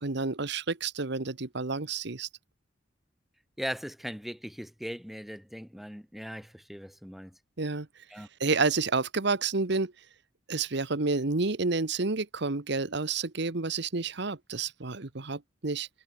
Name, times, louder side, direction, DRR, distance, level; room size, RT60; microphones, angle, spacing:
voice 1, 0.0-2.3 7.6-7.9 8.2-9.9 10.5-15.9, right 3 dB, 65° right, 1.2 m, -30 dB
voice 2, 3.6-7.4 8.1-8.3, equal, ahead, 1.4 m, -39 dB
head